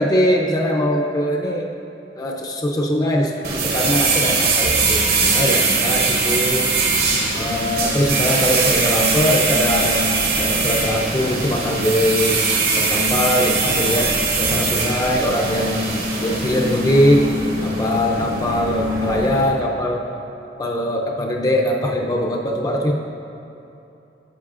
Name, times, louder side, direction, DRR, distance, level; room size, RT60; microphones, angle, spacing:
voice 1, 0.0-1.7 2.1-6.7 7.3-10.1 10.4-15.8 16.2-17.3 17.6-20.0 20.6-22.9, equal, 20° left, -1 dB, 0.5 m, -21 dB
sound 1, 3.4-19.5, right 3 dB, 60° right, 1.2 m, -21 dB
12.0 x 7.9 x 2.5 m, 2.8 s
head